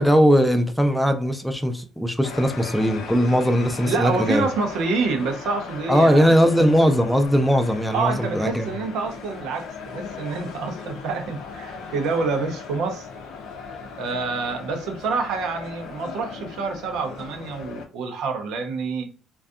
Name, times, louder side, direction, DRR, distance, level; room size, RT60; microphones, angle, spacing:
voice 1, 0.0-4.5 5.9-8.7, equal, ahead, 0.3 m, -19 dB
sound 1, 2.2-17.8, left 5 dB, 85° left, 0.5 m, -38 dB
voice 2, 3.8-6.5 7.9-13.1 14.0-19.1, right 4 dB, 85° right, 0.5 m, -27 dB
2.6 x 2.2 x 2.3 m
cardioid pair, 115°, 0 cm